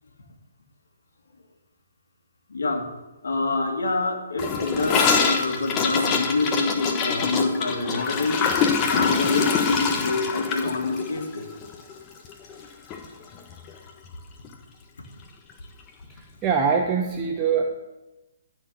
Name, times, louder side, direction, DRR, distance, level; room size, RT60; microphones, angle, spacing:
voice 1, 2.5-2.9 3.2-8.4 8.9-11.5, left 3 dB, 75° left, 2 dB, 2.0 m, -26 dB
Gurgling / Toilet flush, 4.4-12.7 12.9-13.1 13.3-13.8 14.1-14.2 14.4-14.5 15.5-15.6, left 6 dB, 25° left, 1.3 m, -25 dB
voice 2, 16.1-17.7, right 6 dB, 20° right, 1 dB, 1.0 m, -23 dB
13.5 x 4.6 x 7.7 m, 1.0 s
hypercardioid pair, 140°, 0 cm